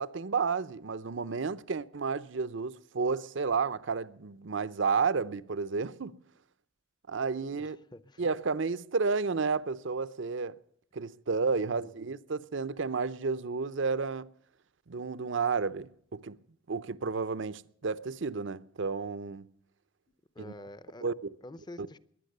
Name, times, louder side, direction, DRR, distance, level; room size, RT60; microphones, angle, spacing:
voice 1, 0.0-6.1 7.1-7.8 8.2-10.5 10.9-14.3 14.9-16.4 16.7-19.5 20.4-20.5 21.0-21.3 21.8-21.9, right 4 dB, 65° right, 0.7 m, -31 dB
voice 2, 7.6-8.2 11.6-11.9 20.3-21.1 21.4-22.0, left 1 dB, 20° left, 0.7 m, -48 dB
21.0 x 9.9 x 6.7 m
head